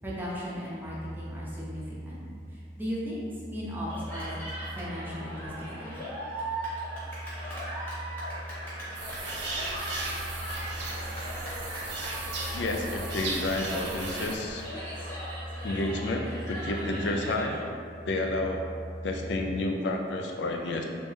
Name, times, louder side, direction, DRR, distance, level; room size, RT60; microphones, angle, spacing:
voice 1, 0.0-2.2 2.5-4.4 4.7-6.1, equal, 10° right, -7 dB, 0.6 m, -37 dB
sound 1, 0.8-19.6, equal, 85° left, 0.9 m, -42 dB
Cheering, 3.9-17.6, right 1 dB, 10° left, 1.0 m, -39 dB
sound 2, 8.9-14.3, right 3 dB, 70° right, 0.5 m, -36 dB
voice 2, 12.5-14.6 15.6-17.7 18.1-18.7 19.0-20.8, left 2 dB, 70° left, 2 dB, 0.4 m, -30 dB
3.3 x 2.7 x 3.3 m, 2.2 s
head